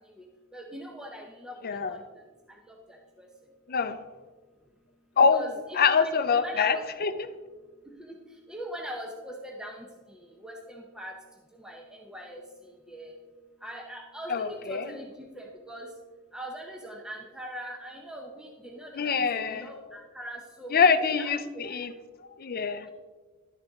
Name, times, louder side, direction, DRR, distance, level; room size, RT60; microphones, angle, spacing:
voice 1, 0.5-1.6 1.9-2.0 2.7-3.3 5.3-6.8 8.1-8.2 8.5-11.1 11.6-12.4 12.9-13.1 13.6-15.9 16.3-20.9 21.2-21.3, right 1 dB, 5° right, 0 dB, 0.7 m, -41 dB
voice 2, 1.6-2.0 3.7-4.0 5.2-5.5 5.7-7.1 14.3-14.9 19.0-19.7 20.7-21.9 22.4-22.9, left 5 dB, 45° left, 11 dB, 0.6 m, -24 dB
11.0 x 6.7 x 3.6 m, 1.4 s
head